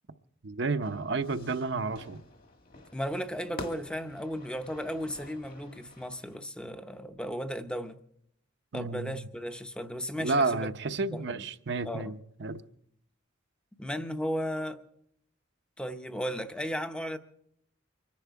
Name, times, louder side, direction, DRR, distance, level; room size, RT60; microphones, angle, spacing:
voice 1, 0.4-2.2 8.7-9.1 10.2-12.6, right 3 dB, 55° right, 0.7 m, -31 dB
Fire / Fireworks, 0.8-6.4, left 2 dB, 45° left, 1.8 m, -48 dB
voice 2, 2.9-8.0 8.7-10.7 11.1-11.4 11.8-12.2 13.8-14.8 15.8-17.2, equal, 5° left, 0.7 m, -35 dB
24.5 x 10.5 x 4.6 m
head